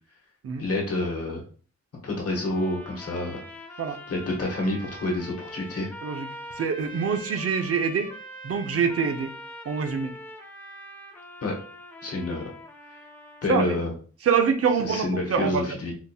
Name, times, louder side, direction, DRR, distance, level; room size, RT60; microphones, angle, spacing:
voice 1, 0.6-1.4 2.0-3.4 4.1-5.9 11.4-11.6 12.0-12.5 13.4-13.9 14.8-15.9, left 2 dB, 55° left, -1 dB, 1.0 m, -28 dB
sound 1, 2.3-13.8, equal, 5° left, 0.6 m, -43 dB
voice 2, 6.6-8.1 8.4-9.3 9.7-10.1 13.5-13.8 14.2-15.6, right 6 dB, 55° right, 6 dB, 0.5 m, -25 dB
3.8 x 2.7 x 2.3 m, 0.41 s
wide cardioid pair, 145°, 29 cm